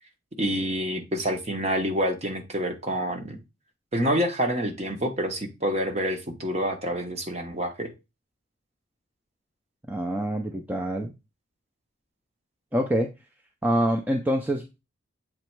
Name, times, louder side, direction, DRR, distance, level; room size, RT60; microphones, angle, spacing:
voice 1, 0.4-3.4 3.9-7.9, equal, 30° right, 5 dB, 1.0 m, -27 dB
voice 2, 9.9-11.1 12.7-13.1 13.6-14.8, equal, 10° right, 2 dB, 0.5 m, -26 dB
7.6 x 3.1 x 4.5 m, 0.26 s
head